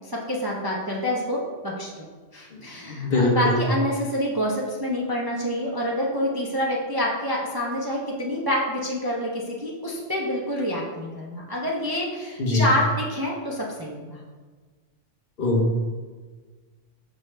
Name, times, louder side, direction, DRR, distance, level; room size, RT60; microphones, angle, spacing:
voice 1, 0.1-2.1 2.3-14.2, left 1 dB, 25° right, -3 dB, 0.6 m, -27 dB
voice 2, 2.9-3.6 12.4-12.6 15.4-15.8, left 2 dB, 50° left, -1 dB, 1.1 m, -22 dB
6.1 x 5.0 x 3.2 m, 1.4 s
omnidirectional pair, 1.2 m